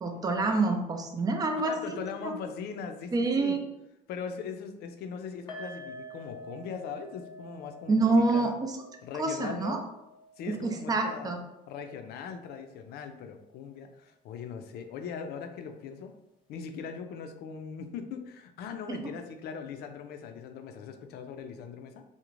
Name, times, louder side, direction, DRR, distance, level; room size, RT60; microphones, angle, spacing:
voice 1, 0.0-2.3 3.1-3.6 7.9-8.8 9.2-9.8 10.5-11.4 18.9-19.0, right 3 dB, 20° right, 4 dB, 0.4 m, -27 dB
voice 2, 1.6-3.6 4.1-8.6 9.0-9.8 10.4-11.4 11.7-16.1 16.5-22.0, left 6 dB, 70° left, 7 dB, 0.4 m, -40 dB
sound 1, 5.5-12.7 12.9-13.1 13.5-13.6, equal, 25° left, 0.7 m, -49 dB
2.4 x 2.0 x 3.0 m, 0.86 s
cardioid pair, 110°, 17 cm